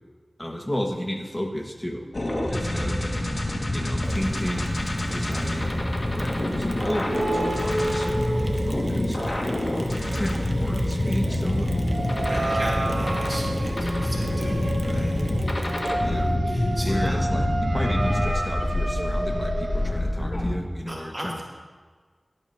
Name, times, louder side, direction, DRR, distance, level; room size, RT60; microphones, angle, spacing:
voice 1, 0.4-2.1 2.5-3.2 3.7-4.7 5.1-9.5 10.1-11.8 12.5-12.7 16.0-16.4 16.8-21.4, equal, 20° left, 1 dB, 2.1 m, -33 dB
sound 1, 2.1-20.5, left 1 dB, 55° left, 2.5 m, -26 dB
Mechanisms, 4.0-16.4, right 1 dB, 60° right, 1.3 m, -39 dB
sound 2, 6.9-9.4 9.7-19.9, right 1 dB, 80° right, 3.1 m, -31 dB
voice 2, 12.3-15.2 16.4-17.2 20.9-21.4, right 1 dB, 30° right, -4 dB, 2.9 m, -36 dB
17.5 x 11.5 x 3.1 m, 1.5 s
wide cardioid pair, 40°, 0 cm